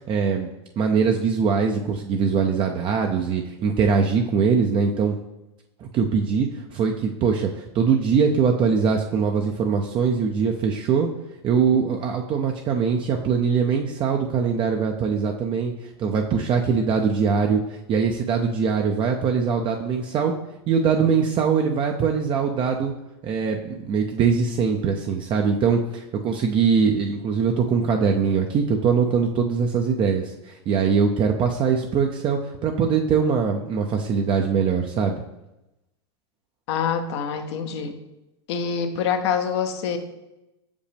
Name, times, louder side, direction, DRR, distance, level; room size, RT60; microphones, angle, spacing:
voice 1, 0.1-0.5 0.8-5.1 5.9-6.5 6.7-7.5 7.7-11.1 11.4-15.7 16.0-17.6 17.9-20.3 20.7-22.9 23.2-25.8 26.2-30.2 30.7-35.2, right 6 dB, 35° right, 3 dB, 0.5 m, -22 dB
voice 2, 36.7-37.9 38.5-40.0, left 7 dB, 65° left, 8 dB, 0.8 m, -25 dB
6.5 x 5.1 x 3.4 m, 0.95 s
hypercardioid pair, 110°, 15 cm